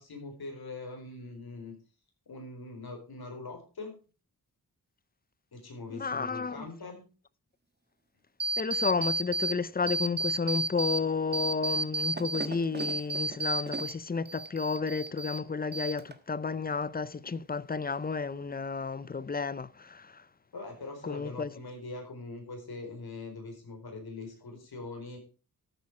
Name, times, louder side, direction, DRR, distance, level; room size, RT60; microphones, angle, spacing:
voice 1, 0.0-1.7 2.3-4.0 5.5-7.1 20.5-25.2, left 3 dB, 85° left, 4.5 m, -42 dB
voice 2, 5.9-6.6 8.6-20.2 21.0-21.5, left 4 dB, 25° left, 0.5 m, -32 dB
sound 1, 8.4-9.5 9.9-11.0 11.3-13.9 14.2-15.4 15.7-16.3, right 2 dB, 30° right, 1.4 m, -32 dB
13.0 x 8.5 x 4.8 m
wide cardioid pair, 125°, 37 cm